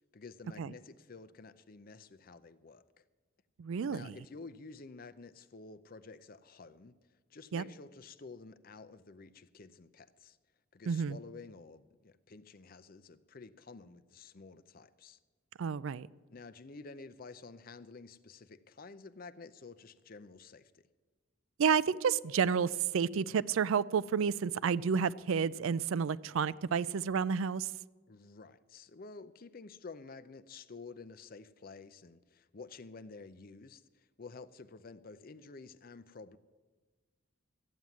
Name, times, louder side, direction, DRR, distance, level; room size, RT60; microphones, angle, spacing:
voice 1, 0.1-3.0 3.9-7.0 7.3-10.4 10.7-15.2 16.3-20.7 28.1-36.4, left 4 dB, 45° left, 0.6 m, -51 dB
voice 2, 3.6-4.1 7.5-7.6 10.9-11.2 15.6-16.1 21.6-27.7, right 6 dB, 80° right, 0.4 m, -30 dB
14.0 x 7.5 x 9.4 m
head